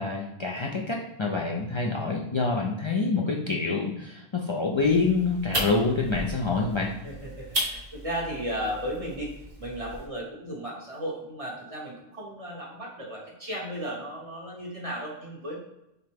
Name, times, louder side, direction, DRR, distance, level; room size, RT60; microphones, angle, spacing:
voice 1, 0.0-6.9, left 3 dB, 45° left, -1 dB, 0.4 m, -26 dB
sound 1, 4.8-10.1, equal, 65° right, 1.1 m, -35 dB
voice 2, 7.0-15.6, equal, 35° right, -3 dB, 1.2 m, -35 dB
6.0 x 2.1 x 3.4 m, 0.87 s
omnidirectional pair, 1.1 m